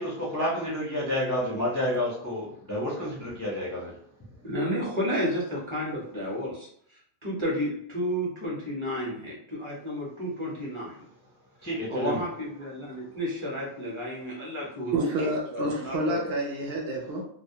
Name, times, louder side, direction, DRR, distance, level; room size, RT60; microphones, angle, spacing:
voice 1, 0.0-4.0 11.6-12.2, left 1 dB, 25° left, -6 dB, 0.4 m, -29 dB
voice 2, 4.4-6.7 7.2-11.0 11.9-15.1 15.5-16.4, equal, 30° right, -5 dB, 0.8 m, -31 dB
voice 3, 14.9-17.2, right 1 dB, 70° right, 0 dB, 0.7 m, -29 dB
2.2 x 2.1 x 2.7 m, 0.65 s
omnidirectional pair, 1.1 m